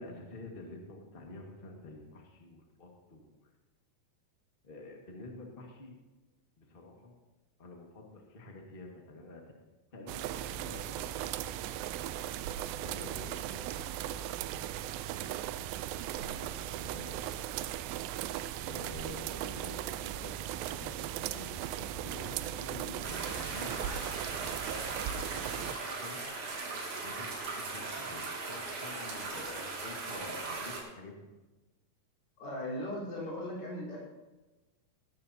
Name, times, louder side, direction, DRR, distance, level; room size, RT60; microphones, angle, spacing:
voice 1, 0.0-3.5 4.6-6.0 6.6-7.1 7.6-11.3 12.8-15.4 15.8-17.2 18.5-24.5 25.1-26.2 27.0-31.3, left 2 dB, 30° left, 1 dB, 1.1 m, -49 dB
sound 1, 10.1-25.7, right 11 dB, 90° right, 2.3 m, -38 dB
sound 2, 23.0-30.8, right 3 dB, 60° right, 3.8 m, -39 dB
voice 2, 32.4-34.0, left 1 dB, 80° left, -5 dB, 6.1 m, -38 dB
18.0 x 13.0 x 2.8 m, 1.1 s
omnidirectional pair, 4.0 m